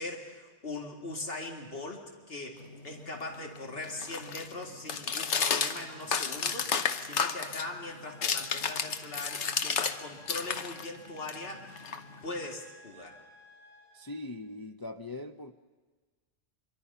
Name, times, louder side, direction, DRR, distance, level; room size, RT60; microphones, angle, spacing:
voice 1, 0.0-11.7 12.2-13.2, left 2 dB, 55° left, 1 dB, 2.6 m, -41 dB
sound 1, 2.6-10.0 10.2-12.5, left 6 dB, 80° left, 1.3 m, -33 dB
sound 2, 5.2-14.2, left 2 dB, 10° left, 6.4 m, -56 dB
voice 2, 13.9-15.5, left 2 dB, 25° left, 6 dB, 0.5 m, -41 dB
25.5 x 23.5 x 5.6 m, 1.4 s
omnidirectional pair, 1.2 m